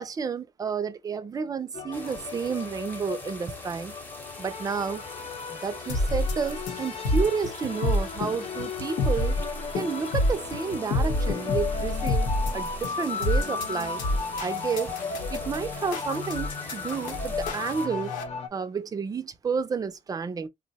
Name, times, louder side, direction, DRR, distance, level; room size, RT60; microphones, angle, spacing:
voice 1, 0.0-3.9 4.4-5.0 5.5-9.4 9.7-12.3 12.5-14.0 14.4-14.9 15.3-18.1 18.5-20.5, right 6 dB, 25° right, 0.4 m, -31 dB
sound 1, 1.7-18.5, left 5 dB, 50° left, 0.7 m, -36 dB
sound 2, 1.9-17.9, left 1 dB, 15° left, 0.9 m, -44 dB
sound 3, 5.9-18.2, left 1 dB, 85° left, 1.0 m, -28 dB
2.6 x 2.1 x 4.0 m
cardioid pair, 120°, 14 cm